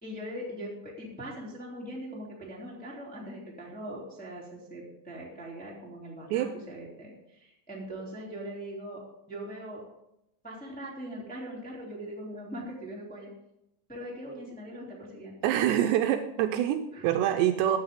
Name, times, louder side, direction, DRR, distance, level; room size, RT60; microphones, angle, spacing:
voice 1, 0.0-9.8 10.4-13.3 13.9-15.3 16.9-17.0, equal, 5° left, -4 dB, 1.9 m, -41 dB
voice 2, 15.4-17.8, right 11 dB, 80° right, 7 dB, 2.7 m, -25 dB
14.5 x 9.7 x 3.7 m, 0.85 s
omnidirectional pair, 5.3 m